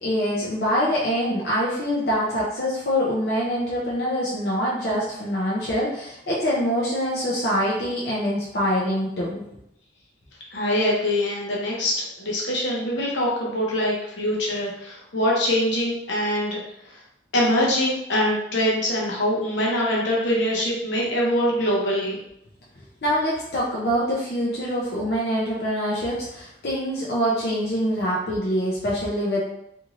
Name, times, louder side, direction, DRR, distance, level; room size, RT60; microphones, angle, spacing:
voice 1, 0.0-9.4 23.0-29.4, equal, 55° left, -6 dB, 0.6 m, -24 dB
voice 2, 10.5-16.6 16.8-17.0 17.3-22.2, left 1 dB, 80° left, -4 dB, 0.9 m, -23 dB
3.0 x 2.6 x 2.5 m, 0.78 s
head